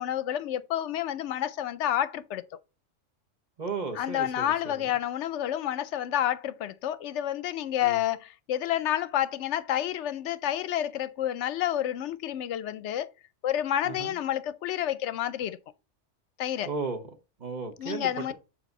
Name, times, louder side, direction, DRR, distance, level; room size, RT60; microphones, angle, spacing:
voice 1, 0.0-2.4 4.0-13.1 13.4-15.6 16.4-16.7 17.8-18.3, left 11 dB, 75° left, 0.8 m, -29 dB
voice 2, 3.6-4.9 7.8-8.0 13.8-14.2 16.6-18.3, right 4 dB, 40° right, 1.0 m, -35 dB
7.4 x 2.9 x 5.2 m
omnidirectional pair, 1.3 m